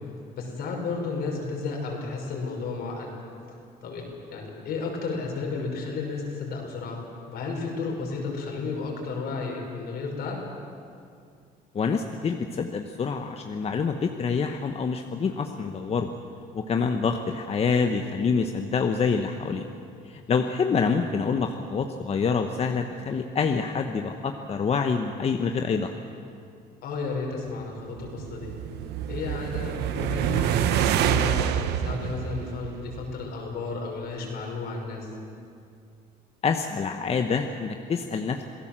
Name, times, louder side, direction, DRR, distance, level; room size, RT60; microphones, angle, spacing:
voice 1, 0.3-3.1 3.8-7.0 7.3-10.4 26.8-28.5 29.1-35.1, left 4 dB, 70° left, 0 dB, 5.9 m, -32 dB
voice 2, 11.7-16.1 16.5-19.7 20.1-25.9 36.4-38.4, left 5 dB, 35° left, 5 dB, 1.2 m, -26 dB
sound 1, 27.8-33.3, right 10 dB, 85° right, 1.1 m, -27 dB
27.0 x 17.0 x 7.6 m, 2.4 s
cardioid pair, 110°, 17 cm